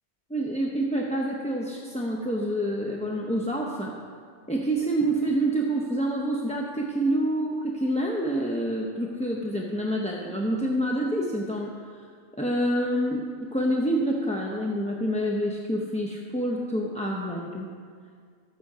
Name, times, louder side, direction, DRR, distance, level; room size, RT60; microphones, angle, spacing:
voice 1, 0.3-3.9 4.5-11.7 12.4-13.2 13.5-17.7, right 1 dB, 5° left, -2 dB, 0.6 m, -27 dB
13.0 x 8.1 x 4.9 m, 2.1 s
omnidirectional pair, 1.2 m